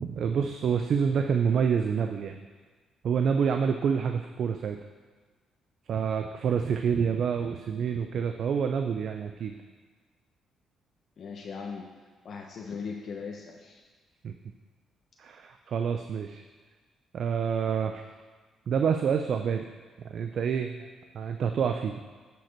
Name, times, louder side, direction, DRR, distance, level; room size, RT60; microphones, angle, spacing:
voice 1, 0.0-2.5 3.0-4.8 5.9-9.5 14.2-14.3 15.2-16.4 17.1-18.0 18.7-19.7 20.0-20.9 21.1-22.0, right 7 dB, 65° right, 6 dB, 0.5 m, -27 dB
voice 2, 11.2-11.9 12.2-13.8, left 5 dB, 60° left, 0 dB, 0.9 m, -38 dB
10.5 x 5.2 x 4.5 m, 1.4 s
supercardioid pair, 65°, 0 cm